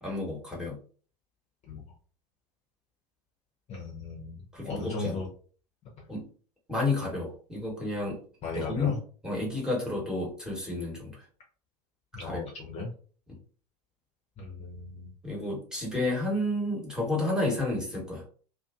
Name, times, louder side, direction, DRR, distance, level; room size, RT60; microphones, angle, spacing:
voice 1, 0.0-0.8 4.5-5.2 6.1-6.3 6.7-8.2 8.5-8.9 9.2-11.2 12.2-12.5 15.2-18.2, left 2 dB, 5° right, -3 dB, 1.2 m, -31 dB
voice 2, 3.7-4.4 4.6-5.3 8.4-9.0 12.1-12.9 14.4-15.1, left 3 dB, 30° left, -2 dB, 0.8 m, -36 dB
2.6 x 2.5 x 2.4 m, 0.42 s
figure-of-eight pair, 80°, 21 cm